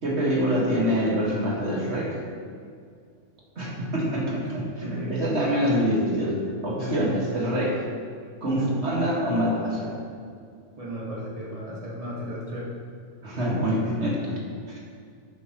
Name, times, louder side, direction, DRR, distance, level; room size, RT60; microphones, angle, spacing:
voice 1, 0.0-2.2 3.6-7.8 8.4-10.0 13.2-14.4 14.7-14.8, equal, 45° right, -4 dB, 2.1 m, -25 dB
voice 2, 4.8-5.2 6.8-7.0 8.6-8.8 10.8-12.7, equal, 20° right, -6 dB, 2.1 m, -34 dB
11.0 x 8.3 x 3.1 m, 2.2 s
omnidirectional pair, 1.7 m